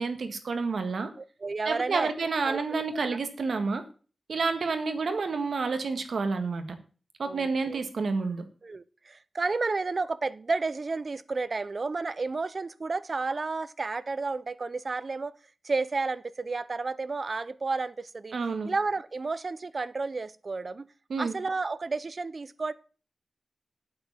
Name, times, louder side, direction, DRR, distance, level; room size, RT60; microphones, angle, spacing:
voice 1, 0.0-1.1 1.6-3.8 4.3-6.7 7.2-8.4 18.3-18.7 21.1-21.3, right 4 dB, 85° right, 1.6 m, -29 dB
voice 2, 1.2-2.1 2.4-3.0 7.2-7.8 8.6-15.4 15.6-18.3 18.6-20.9 21.2-22.7, right 3 dB, 50° right, 0.6 m, -32 dB
8.6 x 7.3 x 7.2 m
wide cardioid pair, 105°, 0 cm